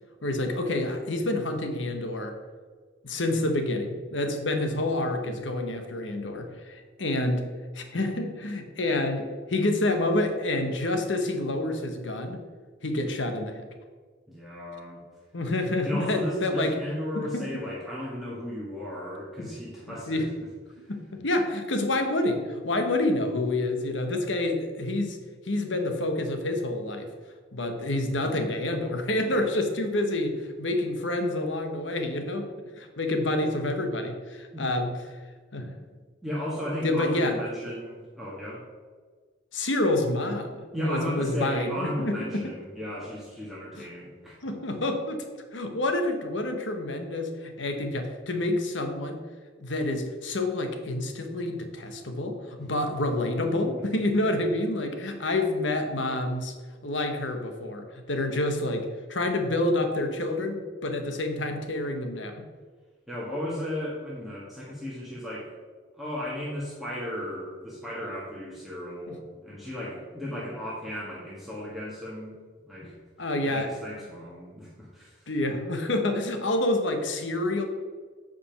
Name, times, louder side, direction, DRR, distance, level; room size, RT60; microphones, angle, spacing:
voice 1, 0.2-2.4 3.0-12.5 12.8-13.7 15.3-16.8 17.1-17.5 19.4-19.5 19.9-20.3 20.9-25.2 25.4-27.1 27.5-32.5 32.8-35.0 35.5-35.8 36.8-37.4 39.5-42.5 43.8-43.9 44.4-45.2 45.5-49.2 49.6-56.5 56.8-62.5 69.1-69.2 73.2-73.7 75.3-77.7, left 1 dB, 80° left, 5 dB, 1.2 m, -28 dB
voice 2, 14.3-15.0 15.8-20.2 20.7-20.8 34.5-34.7 36.2-38.6 40.7-44.4 63.1-65.5 65.9-72.3 72.7-72.9 73.4-75.2, equal, ahead, -8 dB, 1.8 m, -35 dB
8.6 x 5.2 x 5.9 m, 1.5 s
head